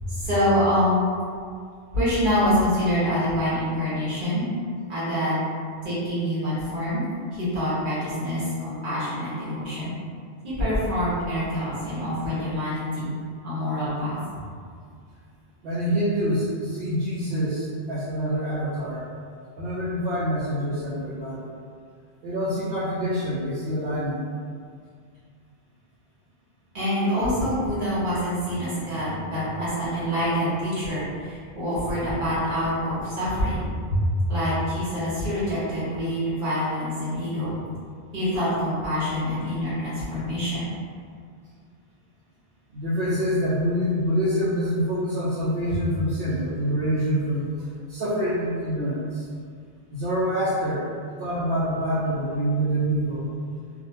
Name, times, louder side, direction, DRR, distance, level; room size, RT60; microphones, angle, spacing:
voice 1, 0.0-1.1 1.9-4.5 4.9-5.4 5.8-7.0 7.3-9.9 10.4-13.1 13.4-14.2 26.7-33.6 33.9-34.0 34.3-37.6 38.1-40.6, equal, 55° right, -10 dB, 1.1 m, -26 dB
voice 2, 15.6-19.0 19.6-21.4 22.2-24.2 27.7-27.9 28.4-29.4 42.7-49.3 49.9-50.9 51.2-53.3, equal, 75° right, -11 dB, 0.8 m, -26 dB
2.4 x 2.1 x 2.7 m, 2.1 s
omnidirectional pair, 1.1 m